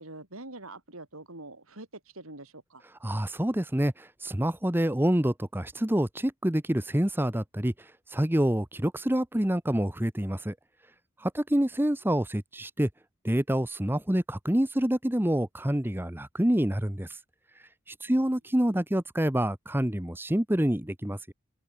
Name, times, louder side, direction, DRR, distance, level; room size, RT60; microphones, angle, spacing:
voice 1, 0.0-2.8 18.1-18.3, right 2 dB, 90° right, 6.5 m, -45 dB
voice 2, 3.0-7.7 8.1-10.5 11.2-12.9 13.2-17.1 18.0-21.3, right 1 dB, 10° right, 0.9 m, -27 dB
open air
head